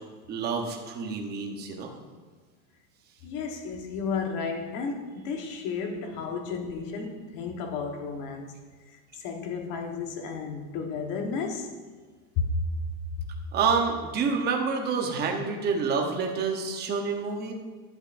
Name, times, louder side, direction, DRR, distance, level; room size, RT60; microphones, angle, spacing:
voice 1, 0.3-1.9 13.5-17.5, right 5 dB, 20° right, 2 dB, 0.8 m, -28 dB
voice 2, 3.2-8.5 8.9-11.8 12.4-12.5, left 5 dB, 45° left, 3 dB, 1.2 m, -33 dB
11.5 x 8.1 x 2.5 m, 1.5 s
supercardioid pair, 165°, 46 cm